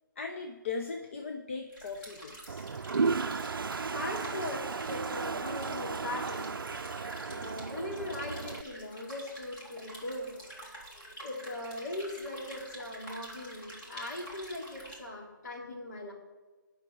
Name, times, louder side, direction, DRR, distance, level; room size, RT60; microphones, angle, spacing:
voice 1, 0.2-2.7, left 4 dB, 35° left, 4 dB, 0.7 m, -38 dB
sound 1, 1.7-14.9, right 1 dB, 15° left, 1.9 m, -48 dB
Toilet flush, 2.5-8.6, right 4 dB, 90° right, 0.4 m, -34 dB
voice 2, 3.3-6.6 7.3-16.1, left 1 dB, 55° left, -3 dB, 3.4 m, -40 dB
8.9 x 5.9 x 7.7 m, 1.2 s
hypercardioid pair, 160°, 11 cm